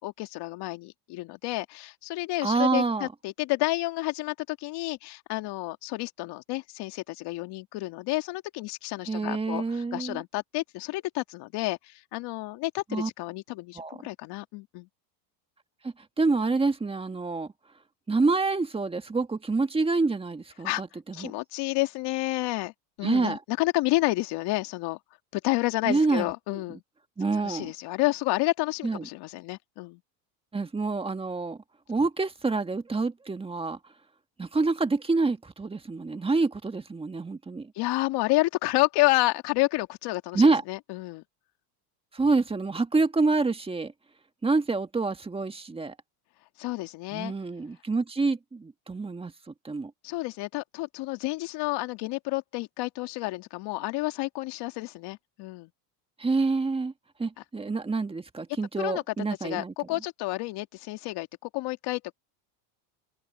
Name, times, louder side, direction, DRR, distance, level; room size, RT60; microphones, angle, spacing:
voice 1, 0.0-14.9 20.6-20.8 21.1-22.7 23.0-25.0 25.3-26.8 27.4-30.0 37.8-41.2 46.6-47.3 50.0-55.7 58.8-59.0 59.4-62.1, left 20 dB, 55° left, 2.5 m, -30 dB
voice 2, 2.4-3.1 9.1-10.2 12.9-13.1 13.8-14.0 16.2-17.5 18.1-21.3 23.0-23.4 25.9-26.6 27.2-27.7 28.8-29.1 30.5-31.6 31.9-33.8 34.4-37.7 40.3-40.6 42.1-43.9 44.4-46.0 47.1-49.9 56.2-56.9 57.2-59.7, right 3 dB, 10° right, 1.7 m, -27 dB
open air
supercardioid pair, 125°, 48 cm